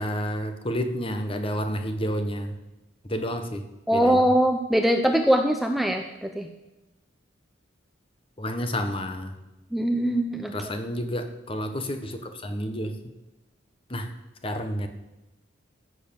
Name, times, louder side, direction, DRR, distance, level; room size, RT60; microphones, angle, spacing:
voice 1, 0.0-2.5 3.1-3.6 3.9-4.2 8.4-9.3 10.5-13.0 13.9-14.1 14.4-14.9, equal, 25° left, 7 dB, 1.1 m, -30 dB
voice 2, 3.9-6.5 9.7-10.5, right 1 dB, ahead, 4 dB, 0.6 m, -22 dB
15.0 x 6.9 x 6.8 m, 1.0 s
head